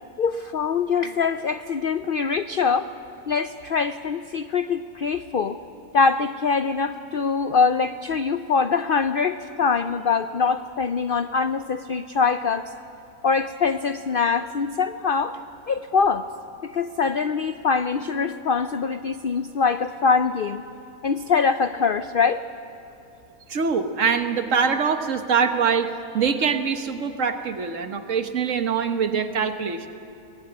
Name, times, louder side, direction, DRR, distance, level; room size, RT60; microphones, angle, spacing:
voice 1, 0.2-2.9 3.3-5.6 5.9-12.7 13.2-15.4 15.7-16.3 16.6-20.6 21.0-22.4, left 5 dB, 60° left, 11 dB, 0.5 m, -23 dB
voice 2, 23.5-29.9, right 6 dB, 60° right, 8 dB, 1.4 m, -24 dB
22.5 x 18.0 x 9.5 m, 2.9 s
omnidirectional pair, 1.6 m